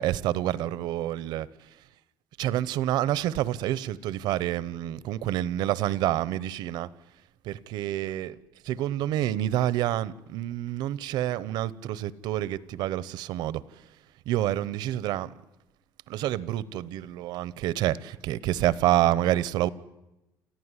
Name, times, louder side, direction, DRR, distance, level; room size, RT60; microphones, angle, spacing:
voice 1, 0.0-1.5 2.4-6.9 7.5-8.3 8.6-13.6 14.3-15.3 16.1-19.7, right 13 dB, 70° right, 0.9 m, -28 dB
28.5 x 14.5 x 9.8 m
cardioid pair, 155°, 7 cm